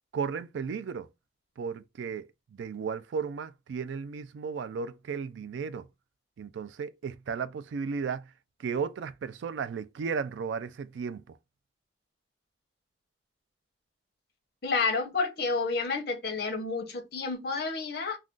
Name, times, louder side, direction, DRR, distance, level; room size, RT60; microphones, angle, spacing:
voice 1, 0.1-1.1 1.6-5.9 6.4-8.2 8.6-11.4, right 6 dB, 85° right, 0.3 m, -34 dB
voice 2, 14.6-18.2, left 4 dB, 55° left, 0.7 m, -30 dB
2.4 x 2.3 x 3.6 m
head